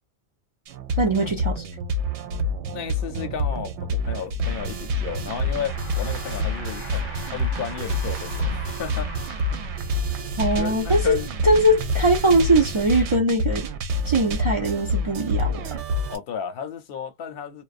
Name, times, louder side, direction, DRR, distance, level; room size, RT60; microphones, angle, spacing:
sound 1, 0.7-16.2, left 1 dB, 80° right, 0.9 m, -27 dB
voice 1, 1.0-1.7 10.4-13.7 14.0-15.8, right 1 dB, 35° right, 0.6 m, -21 dB
voice 2, 2.7-9.1 10.1-11.3 16.1-17.6, left 8 dB, 60° left, 0.8 m, -34 dB
sound 2, 5.2-10.2, left 3 dB, 10° left, 1.2 m, -42 dB
2.4 x 2.2 x 2.4 m
omnidirectional pair, 1.2 m